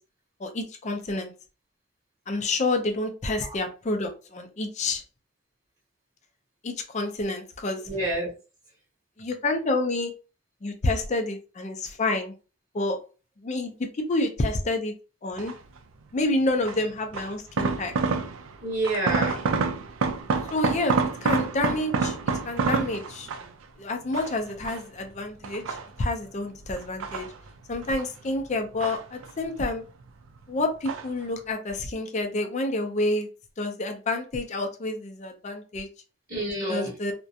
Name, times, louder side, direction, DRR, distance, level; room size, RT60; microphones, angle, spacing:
voice 1, 0.4-1.3 2.3-5.0 6.6-7.8 9.2-10.1 10.6-12.3 12.7-13.0 13.4-14.9 15.2-15.5 16.1-17.9 20.5-22.2 22.5-23.3 23.8-27.3 27.7-29.8 30.5-33.3 33.6-35.9 36.7-37.1, left 2 dB, 35° left, 5 dB, 0.4 m, -28 dB
voice 2, 7.9-8.3 18.6-19.4 36.3-36.9, right 1 dB, 35° right, -5 dB, 0.9 m, -28 dB
sound 1, 15.4-15.8 16.7-18.6 18.8-23.6 24.1-25.0 25.4-26.3 26.8-28.1 28.4-29.6 29.8-30.4 30.8-31.2 31.5-31.6, right 4 dB, 85° right, 0.4 m, -28 dB
2.4 x 2.1 x 2.7 m, 0.33 s
head